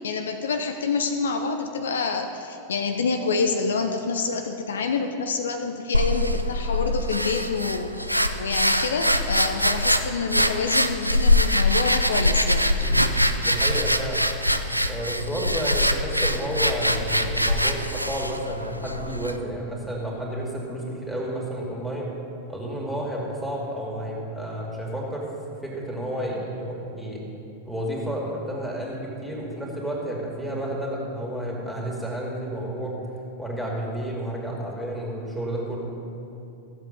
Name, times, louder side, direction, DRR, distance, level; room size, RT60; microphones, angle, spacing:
voice 1, 0.0-12.7, left 4 dB, 65° left, 6 dB, 0.6 m, -27 dB
sound 1, 5.9-19.4, left 1 dB, 90° right, 0.4 m, -23 dB
voice 2, 12.8-14.3 14.8-22.1 22.5-25.2 25.5-27.2 27.6-33.0 33.4-36.0, right 1 dB, ahead, -4 dB, 2.7 m, -31 dB
14.5 x 7.7 x 5.3 m, 2.7 s
figure-of-eight pair, 90°, 0 cm